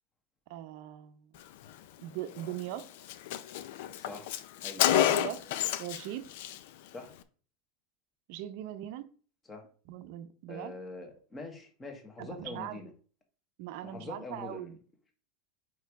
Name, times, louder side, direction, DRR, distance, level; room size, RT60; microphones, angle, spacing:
voice 1, 0.5-1.2 2.0-2.9 4.9-5.4 5.8-6.3 8.3-9.1 9.9-10.7 12.2-12.8 13.6-14.8, right 12 dB, 55° right, 10 dB, 0.7 m, -40 dB
Car, 2.4-2.5 2.8-2.9 3.1-6.0 6.3-6.6, left 12 dB, 65° left, 0.5 m, -29 dB
voice 2, 4.0-4.3 4.6-4.8 6.9-7.1 9.5-9.6 10.5-12.9 13.8-14.8, left 3 dB, 15° left, 4 dB, 1.2 m, -44 dB
4.7 x 4.5 x 4.7 m, 0.40 s
supercardioid pair, 160°, 0 cm